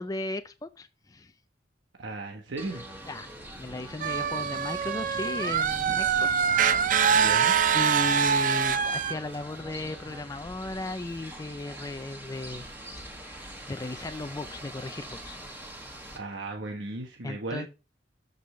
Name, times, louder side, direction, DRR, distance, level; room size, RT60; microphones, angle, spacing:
voice 1, 0.0-1.3 3.1-3.3 3.6-7.2 7.7-12.7 13.2-15.8 17.2-17.7, left 2 dB, 20° left, 0.4 m, -36 dB
voice 2, 2.0-2.8 7.1-7.6 16.1-17.7, right 2 dB, 85° right, 1.2 m, -36 dB
sound 1, 2.6-16.2, right 1 dB, 10° right, 1.9 m, -44 dB
sound 2, 4.0-9.1, right 7 dB, 45° right, 0.5 m, -24 dB
13.0 x 5.4 x 3.1 m
head